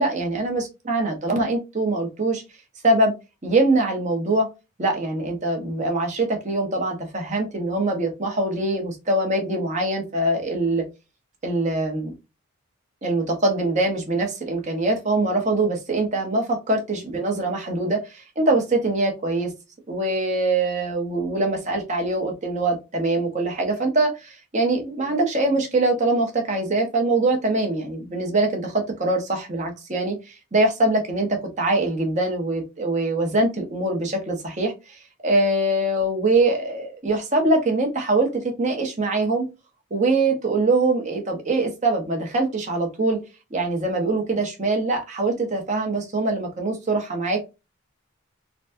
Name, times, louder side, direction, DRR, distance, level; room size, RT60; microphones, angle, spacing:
voice 1, 0.0-2.4 2.8-3.1 3.4-4.5 4.8-10.8 11.4-12.1 13.0-19.5 19.9-39.4 39.9-43.2 43.5-47.5, right 2 dB, 35° right, 2 dB, 1.0 m, -23 dB
4.0 x 2.2 x 2.6 m, 0.26 s
head